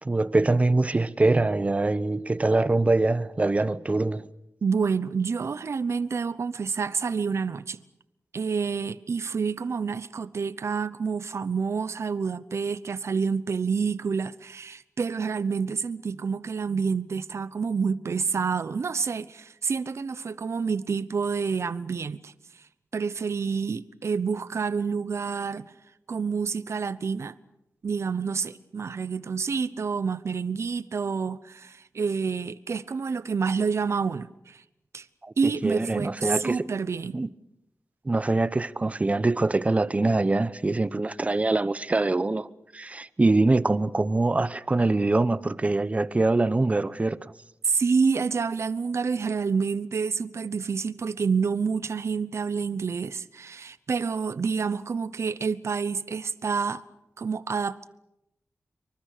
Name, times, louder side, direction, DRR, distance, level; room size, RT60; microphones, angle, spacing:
voice 1, 0.0-4.3 35.2-36.6 37.1-37.3 38.0-42.5 42.7-47.3, right 2 dB, 25° right, 0.8 m, -24 dB
voice 2, 4.6-7.8 8.3-22.3 22.9-25.7 26.1-27.3 27.8-34.6 34.9-35.1 35.4-37.2 47.6-56.8 57.2-57.9, right 5 dB, 60° right, 0.9 m, -28 dB
26.5 x 24.0 x 6.6 m
wide cardioid pair, 120°, 5 cm